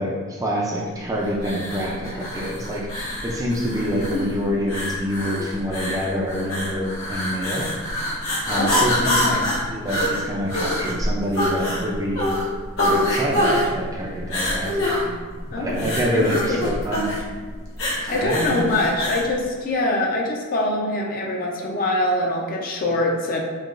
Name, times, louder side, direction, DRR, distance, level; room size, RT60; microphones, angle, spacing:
voice 1, 0.0-7.7 8.5-12.3 12.8-15.1 15.6-17.1 18.0-18.8, equal, 15° right, -3 dB, 0.4 m, -26 dB
sound 1, 1.4-19.3, left 1 dB, 70° left, 0.9 m, -25 dB
voice 2, 8.6-9.5 15.5-16.7 18.1-23.4, left 1 dB, 45° left, -1 dB, 0.5 m, -24 dB
4.6 x 2.3 x 2.5 m, 1.5 s
head